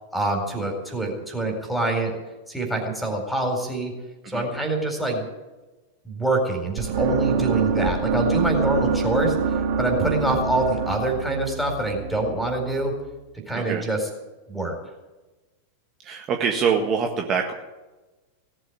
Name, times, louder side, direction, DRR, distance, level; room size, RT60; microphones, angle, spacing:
voice 1, 0.1-2.1 2.5-3.9 4.3-5.2 6.0-12.9 13.5-14.0 14.5-14.8, right 1 dB, ahead, 3 dB, 4.4 m, -25 dB
sound 1, 6.8-12.8, right 5 dB, 50° right, 2.2 m, -25 dB
voice 2, 13.5-13.8 16.0-17.5, right 6 dB, 30° right, 2 dB, 1.6 m, -24 dB
18.0 x 8.0 x 9.8 m, 1.1 s
figure-of-eight pair, 90°, 0 cm